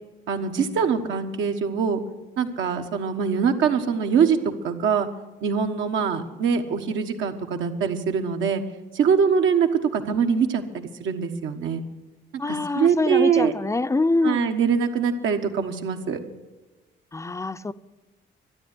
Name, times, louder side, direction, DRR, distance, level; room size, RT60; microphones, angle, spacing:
voice 1, 0.3-2.0 2.4-4.4 4.6-5.1 5.4-8.6 8.9-11.8 12.5-13.5 14.2-16.2, right 6 dB, 75° right, 1.4 m, -23 dB
voice 2, 12.4-14.4 17.1-17.7, left 3 dB, 15° left, 0.5 m, -25 dB
12.5 x 10.0 x 9.6 m
cardioid pair, 90°, 20 cm